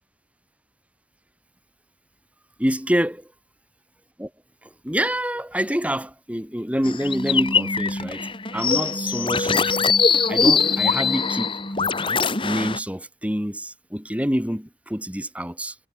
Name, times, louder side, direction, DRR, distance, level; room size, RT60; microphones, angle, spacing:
voice 1, 2.6-3.1 4.2-4.3 4.6-8.3 8.5-9.9 10.3-11.6 12.4-15.8, equal, 10° right, 4.2 m, -26 dB
sound 1, 6.8-12.8, left 5 dB, 30° left, 3.9 m, -22 dB
head